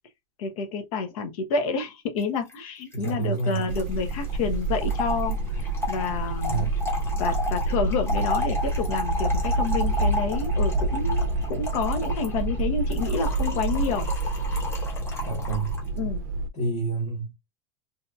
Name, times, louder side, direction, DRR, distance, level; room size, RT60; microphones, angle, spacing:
voice 1, 0.4-5.4 5.9-6.6 7.2-14.1 16.0-16.2, left 5 dB, 80° left, 0.8 m, -29 dB
Trickle dribble / Fill (with liquid), 2.2-2.3 2.5-2.6 2.8-15.9, left 1 dB, 15° left, 0.8 m, -34 dB
voice 2, 2.9-3.7 6.4-6.7 15.2-15.8 16.5-17.4, right 4 dB, 50° left, 1.3 m, -28 dB
sound 1, 3.7-16.5, right 2 dB, 65° right, 0.4 m, -27 dB
2.8 x 2.7 x 2.2 m
supercardioid pair, 155°, 18 cm